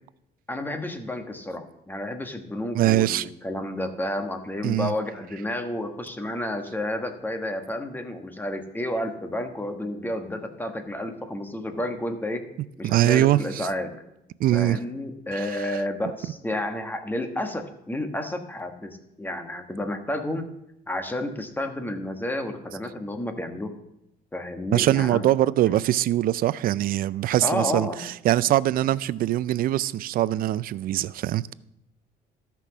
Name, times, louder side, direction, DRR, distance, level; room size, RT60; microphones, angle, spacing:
voice 1, 0.5-12.5 12.8-13.9 14.5-20.5 20.9-23.7 24.3-25.2 25.7-25.8 27.4-28.0, left 1 dB, 10° left, 1.3 m, -31 dB
voice 2, 2.7-3.3 4.6-4.9 12.8-13.7 14.4-14.8 15.3-15.8 24.7-31.5, right 14 dB, 60° right, 0.4 m, -23 dB
13.0 x 6.0 x 6.1 m
cardioid pair, 110°, 17 cm